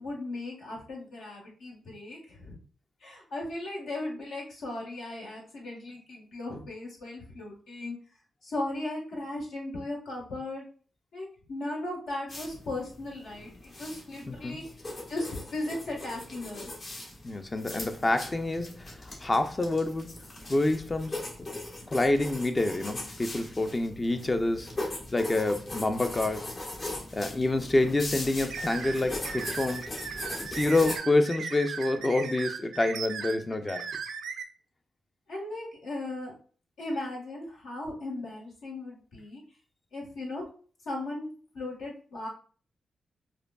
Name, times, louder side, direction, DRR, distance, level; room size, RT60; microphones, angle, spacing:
voice 1, 0.0-2.6 3.0-8.0 8.4-10.7 11.1-14.6 15.1-16.7 35.3-36.3 36.8-39.4 39.9-40.5 40.8-41.3 41.5-42.3, left 2 dB, 80° left, 1.3 m, -37 dB
sound 1, 12.3-31.0, left 2 dB, 60° left, 1.2 m, -40 dB
voice 2, 14.3-14.6 17.2-20.1 20.5-21.2 21.8-24.7 25.1-26.5 27.1-29.9 30.4-33.9, left 2 dB, 35° left, 0.5 m, -27 dB
sound 2, 28.5-34.4, right 6 dB, 80° right, 0.4 m, -37 dB
4.9 x 2.3 x 2.2 m
supercardioid pair, 40°, 0 cm